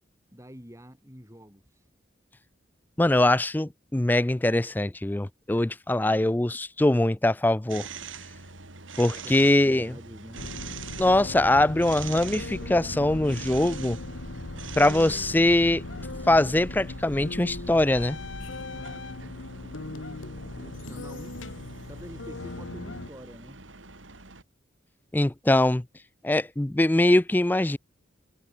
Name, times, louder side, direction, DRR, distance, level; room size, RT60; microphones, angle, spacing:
voice 1, 0.3-1.9 9.0-10.5 18.7-21.6 21.9-23.7, equal, 15° right, 7.1 m, -47 dB
voice 2, 3.0-7.9 9.0-9.9 11.0-14.0 14.8-15.8 16.3-18.2 25.1-25.8 26.2-27.8, left 1 dB, 10° left, 0.4 m, -22 dB
sound 1, 7.7-24.4, right 5 dB, 85° right, 4.7 m, -44 dB
sound 2, 10.4-23.1, left 2 dB, 85° left, 1.5 m, -38 dB
head